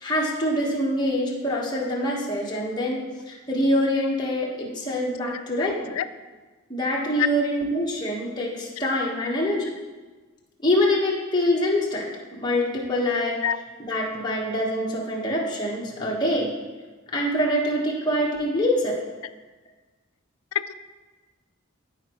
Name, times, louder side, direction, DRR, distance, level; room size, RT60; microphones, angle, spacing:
voice 1, 0.0-3.0 3.3-5.9 6.7-9.6 10.6-12.1 12.4-13.4 13.8-16.5 17.1-19.1, left 1 dB, 20° left, -3 dB, 1.2 m, -25 dB
voice 2, 5.6-6.1 7.2-7.3 13.4-13.6 20.5-20.7, left 11 dB, 85° left, 12 dB, 0.3 m, -26 dB
13.5 x 4.6 x 3.0 m, 1.3 s
head